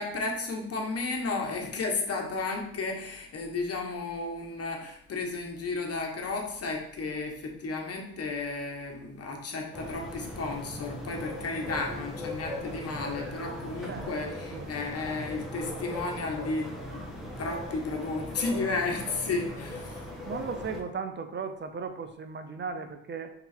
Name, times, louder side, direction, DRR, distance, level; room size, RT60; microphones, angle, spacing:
voice 1, 0.0-20.1, left 3 dB, 50° left, 2 dB, 1.5 m, -33 dB
sound 1, 9.7-20.8, left 1 dB, ahead, 1.6 m, -39 dB
voice 2, 20.3-23.3, right 5 dB, 40° right, 7 dB, 0.6 m, -36 dB
5.3 x 4.0 x 4.4 m, 0.72 s
cardioid pair, 90°, 30 cm